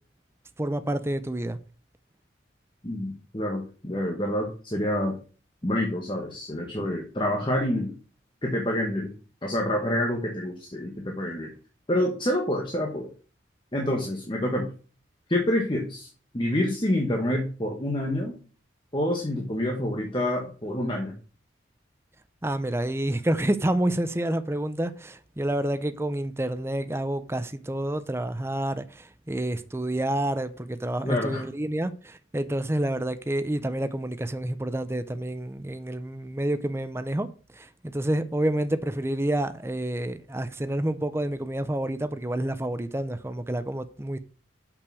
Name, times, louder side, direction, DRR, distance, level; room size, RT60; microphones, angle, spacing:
voice 1, 0.6-1.6 22.4-37.3 37.6-44.2, right 1 dB, 15° right, 0.5 m, -28 dB
voice 2, 2.8-5.2 5.6-7.9 8.4-9.1 9.4-11.5 11.9-13.1 13.7-14.7 15.3-16.1 16.3-18.3 18.9-21.1 31.0-31.4, left 1 dB, 25° left, 1.3 m, -27 dB
6.6 x 5.9 x 6.2 m
head